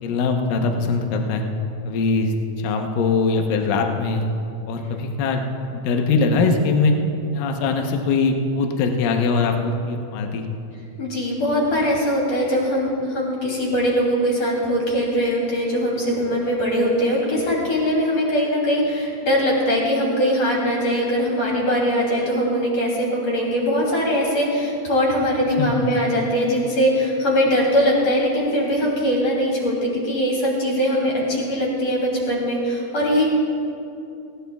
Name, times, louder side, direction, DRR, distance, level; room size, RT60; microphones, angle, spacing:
voice 1, 0.0-1.4 1.9-4.3 4.7-6.9 7.3-10.5 25.6-25.7, left 4 dB, 70° left, 3 dB, 2.3 m, -22 dB
voice 2, 11.0-33.3, equal, 40° left, -4 dB, 3.6 m, -21 dB
20.0 x 17.5 x 2.3 m, 2.7 s
omnidirectional pair, 4.9 m